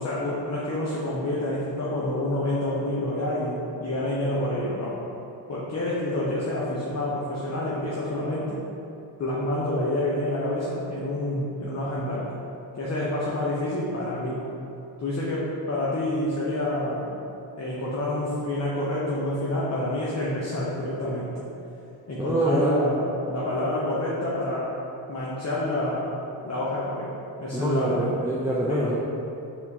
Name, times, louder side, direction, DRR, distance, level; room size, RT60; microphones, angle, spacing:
voice 1, 0.0-5.0 5.5-8.6 9.2-12.3 12.7-14.4 15.0-17.2 17.6-21.3 22.1-24.7 25.1-26.1 26.4-27.1 27.4-28.1 28.4-28.8, left 1 dB, 35° left, -7 dB, 0.8 m, -28 dB
voice 2, 22.3-22.7 27.5-28.9, right 1 dB, 5° right, -6 dB, 0.4 m, -25 dB
4.3 x 3.7 x 2.8 m, 2.8 s
supercardioid pair, 50°, 47 cm